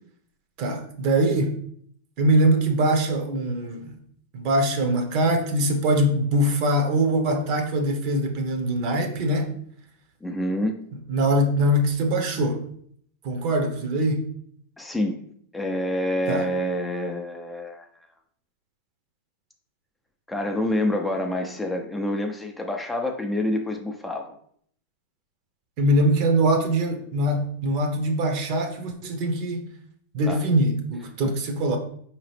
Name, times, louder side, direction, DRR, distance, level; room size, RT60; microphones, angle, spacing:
voice 1, 0.6-1.6 2.2-3.9 4.3-9.5 11.1-12.6 13.2-14.2 16.3-16.5 25.8-29.6 30.1-31.8, right 1 dB, 50° right, 5 dB, 0.8 m, -22 dB
voice 2, 10.2-10.8 14.8-15.2 15.5-17.9 20.3-24.3 30.2-30.4, left 1 dB, 5° left, 3 dB, 0.5 m, -27 dB
4.7 x 2.9 x 3.2 m, 0.64 s
hypercardioid pair, 115°, 0 cm